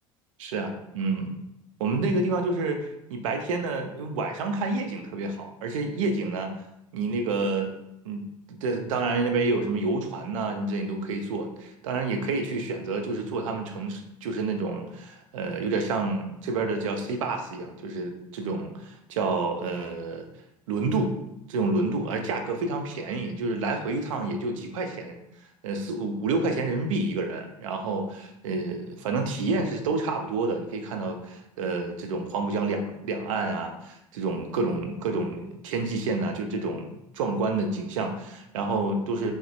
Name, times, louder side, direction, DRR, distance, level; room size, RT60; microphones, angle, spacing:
voice 1, 0.4-1.3 1.8-6.5 6.9-7.7 8.0-20.2 20.7-21.1 21.5-25.2 25.6-39.3, right 3 dB, 70° right, 4 dB, 0.4 m, -29 dB
3.1 x 2.0 x 2.5 m, 0.83 s
figure-of-eight pair, 65°, 17 cm